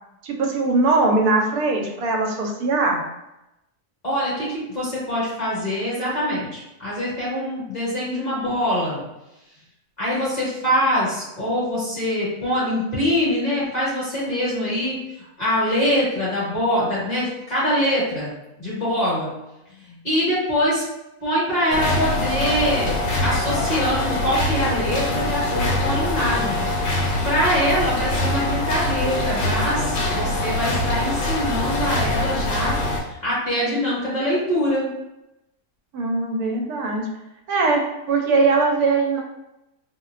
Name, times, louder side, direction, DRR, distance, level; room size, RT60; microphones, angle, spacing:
voice 1, 0.2-3.0 35.9-37.1 37.5-39.2, right 3 dB, 85° right, 1 dB, 1.1 m, -21 dB
voice 2, 4.0-9.0 10.0-18.3 18.6-19.3 19.7-20.8 21.2-26.7 27.2-32.8 33.1-34.9, equal, 30° left, -9 dB, 1.5 m, -24 dB
sound 1, 21.7-33.0, left 2 dB, 90° left, 1.2 m, -23 dB
4.2 x 2.2 x 2.4 m, 0.91 s
omnidirectional pair, 1.6 m